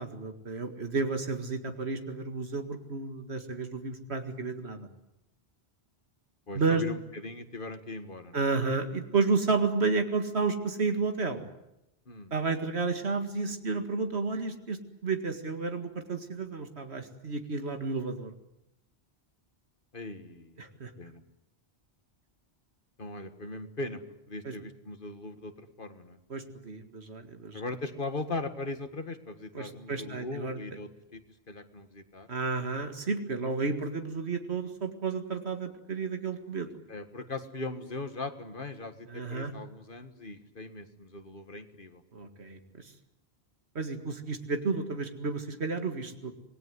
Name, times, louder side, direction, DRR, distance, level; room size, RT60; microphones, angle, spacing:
voice 1, 0.0-4.9 6.5-6.9 8.3-11.4 12.3-18.3 20.6-20.9 24.4-24.5 26.3-27.6 29.5-30.6 32.3-36.7 39.1-39.5 42.1-42.9 43.8-46.3, right 4 dB, 85° right, 6 dB, 2.2 m, -31 dB
voice 2, 6.5-8.4 12.1-12.3 19.9-20.6 21.0-21.2 23.0-24.0 24.3-26.2 27.5-31.2 31.5-32.3 36.9-42.0, left 2 dB, 55° left, 9 dB, 2.0 m, -39 dB
26.0 x 20.0 x 9.6 m, 0.87 s
omnidirectional pair, 1.1 m